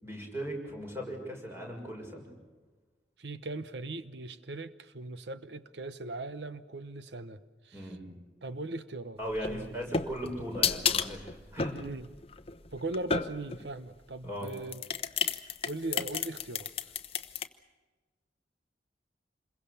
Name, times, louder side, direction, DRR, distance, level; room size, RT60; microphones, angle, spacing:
voice 1, 0.0-2.3 7.7-8.1 9.2-11.7 14.2-14.5, equal, 15° right, 0 dB, 6.5 m, -38 dB
voice 2, 3.2-8.0 8.4-9.2 9.5-9.7 11.8-12.1 12.7-14.8 15.6-16.7, right 2 dB, 75° right, 13 dB, 1.0 m, -39 dB
sound 1, 9.3-13.7 14.4-17.5, left 6 dB, 35° left, 0.9 m, -32 dB
27.0 x 22.5 x 6.9 m, 1.3 s
head